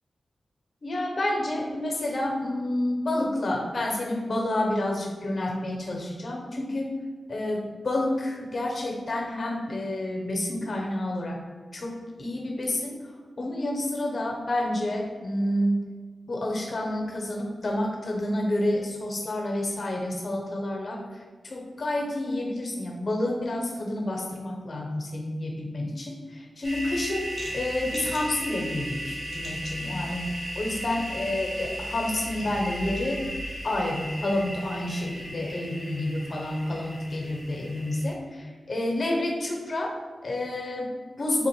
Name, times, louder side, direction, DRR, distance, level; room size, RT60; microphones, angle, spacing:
voice 1, 0.8-6.9 7.3-11.4 11.7-13.0 13.4-15.8 16.3-27.3 27.5-33.2 33.6-41.5, left 1 dB, 60° left, 1 dB, 0.9 m, -29 dB
sound 1, 26.6-38.1, right 1 dB, 45° right, 1.2 m, -36 dB
3.9 x 2.4 x 4.4 m, 1.5 s
cardioid pair, 40°, 0 cm